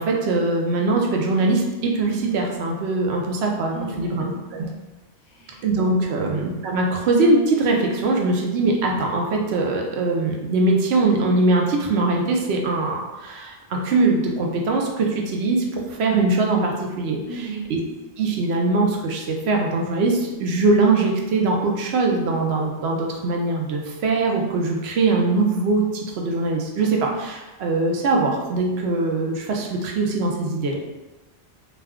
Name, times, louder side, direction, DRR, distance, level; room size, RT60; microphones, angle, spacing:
voice 1, 0.0-4.7 5.6-17.2 17.7-17.8 18.2-30.8, right 3 dB, 80° right, 0 dB, 0.8 m, -22 dB
voice 2, 3.7-4.7 5.2-5.6 6.0-6.1 17.3-17.7, right 4 dB, 55° left, -3 dB, 0.6 m, -36 dB
2.4 x 2.2 x 3.5 m, 1.1 s
omnidirectional pair, 1.1 m